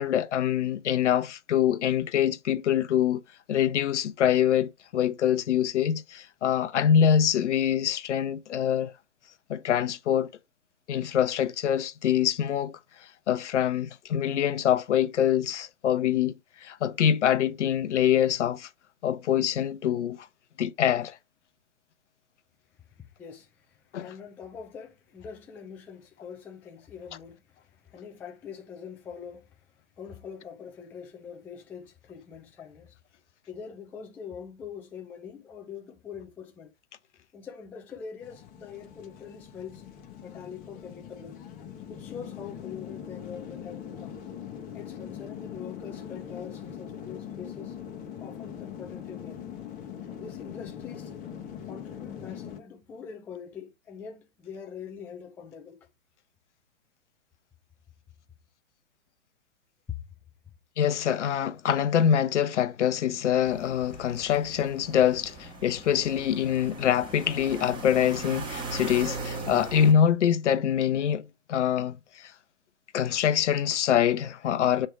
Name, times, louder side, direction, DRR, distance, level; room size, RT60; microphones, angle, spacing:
voice 1, 0.0-3.2 3.5-8.9 9.5-10.3 10.9-12.8 13.3-16.3 16.6-18.7 19.0-20.3 20.6-21.2 23.9-24.1 60.8-72.3 72.9-74.9, left 9 dB, 60° left, 0.9 m, -25 dB
voice 2, 23.2-29.5 30.0-33.0 33.5-36.7 37.3-39.8 40.2-41.4 41.9-44.2 44.7-47.8 48.2-49.4 50.2-51.1 51.7-55.8 59.9-60.0, left 7 dB, 5° left, 0.4 m, -43 dB
sound 1, 38.2-52.6, left 9 dB, 20° left, 1.0 m, -41 dB
sound 2, 63.4-69.9, right 3 dB, 10° right, 1.6 m, -39 dB
7.7 x 3.4 x 4.7 m
hypercardioid pair, 125°, 40 cm